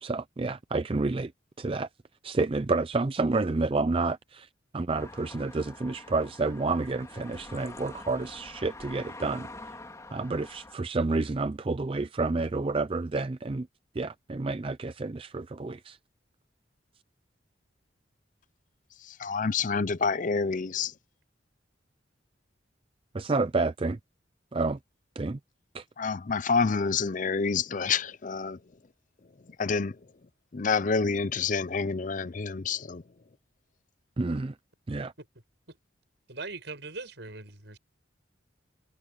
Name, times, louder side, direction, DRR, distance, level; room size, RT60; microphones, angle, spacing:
voice 1, 0.0-1.3 1.6-1.9 2.2-4.5 4.7-9.5 10.1-13.7 13.9-16.0 23.1-24.0 24.5-24.8 25.2-25.4 25.7-25.8 34.2-34.5 34.9-35.1, right 3 dB, 30° right, 0.4 m, -29 dB
sound 1, 5.0-10.7, left 2 dB, 15° left, 2.9 m, -46 dB
voice 2, 19.0-20.9 26.0-28.6 29.6-30.0 30.5-33.0, left 5 dB, 40° left, 0.5 m, -28 dB
voice 3, 36.3-37.8, right 3 dB, 65° right, 7.3 m, -40 dB
head